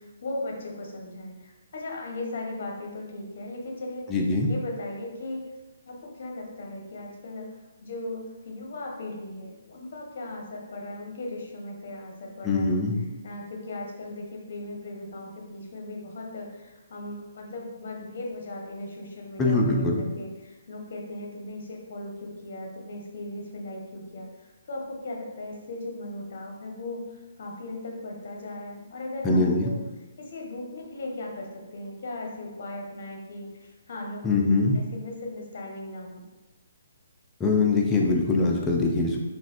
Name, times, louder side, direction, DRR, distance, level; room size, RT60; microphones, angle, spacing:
voice 1, 0.0-4.1 4.5-5.4 5.8-12.8 13.2-29.8 30.2-31.5 31.7-36.2, left 2 dB, 55° left, 0 dB, 0.8 m, -37 dB
voice 2, 4.1-4.5 12.4-13.0 19.4-20.0 29.2-29.7 34.2-34.8 37.4-39.2, left 3 dB, 10° left, -2 dB, 0.4 m, -23 dB
3.0 x 2.4 x 2.9 m, 1.1 s
hypercardioid pair, 155°, 0 cm